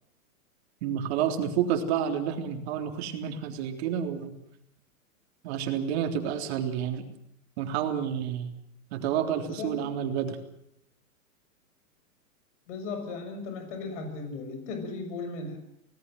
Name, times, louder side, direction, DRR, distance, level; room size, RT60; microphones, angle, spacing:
voice 1, 0.8-4.3 5.4-7.0 7.6-8.5 8.9-10.4, right 9 dB, 50° right, 5 dB, 3.7 m, -29 dB
voice 2, 9.4-9.9 12.7-15.6, left 3 dB, 55° left, 6 dB, 6.8 m, -36 dB
25.0 x 19.0 x 7.9 m, 0.74 s
hypercardioid pair, 150°, 42 cm